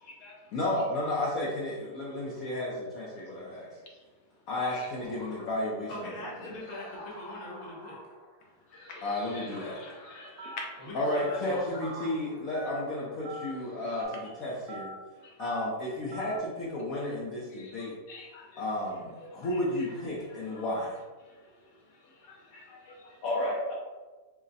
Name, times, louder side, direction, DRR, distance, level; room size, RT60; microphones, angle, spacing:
voice 1, 0.5-3.7 4.5-5.9 6.4-6.5 9.0-9.8 10.9-14.9 15.4-17.9 18.6-21.0 23.2-23.7, left 1 dB, 65° left, -5 dB, 1.1 m, -32 dB
sound 1, 4.7-14.0, left 1 dB, 25° left, 0.7 m, -50 dB
voice 2, 5.9-8.0 10.8-11.7, left 1 dB, 40° left, -4 dB, 1.1 m, -41 dB
voice 3, 8.7-10.9 14.4-14.5 15.2-15.5 17.5-18.6 19.2-19.9 20.3-20.7 21.3-23.2, left 3 dB, 80° left, -1 dB, 1.4 m, -48 dB
Telephone, 10.4-10.7 11.1-11.4 11.8-12.1 12.5-12.8 13.2-13.5 14.0-14.2 14.7-15.0 15.4-15.7 16.1-16.4, right 3 dB, 70° right, 0.9 m, -42 dB
4.9 x 2.1 x 3.9 m, 1.3 s
omnidirectional pair, 1.7 m